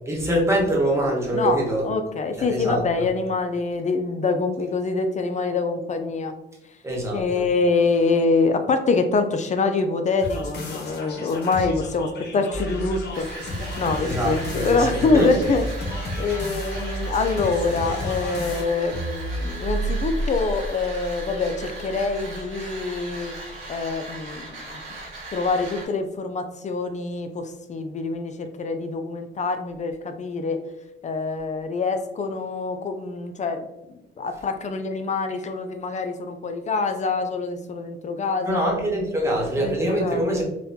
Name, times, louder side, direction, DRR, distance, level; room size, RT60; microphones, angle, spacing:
voice 1, 0.1-1.8 2.4-3.1 6.8-7.5 14.0-15.3 38.4-40.4, right 1 dB, 15° right, -3 dB, 1.1 m, -24 dB
voice 2, 1.3-6.3 7.1-13.3 13.8-15.6 16.2-23.3 23.7-24.6 25.3-30.6 31.0-33.6 33.9-38.7 39.3-40.4, left 4 dB, 35° left, 7 dB, 0.4 m, -25 dB
sound 1, 10.2-18.6, equal, 55° left, 0.9 m, -32 dB
sound 2, 13.1-25.9, right 2 dB, 80° right, 1.0 m, -38 dB
sound 3, 18.9-23.4, right 2 dB, 40° right, 0.5 m, -31 dB
4.0 x 2.2 x 2.6 m, 0.89 s
cardioid pair, 90°, 20 cm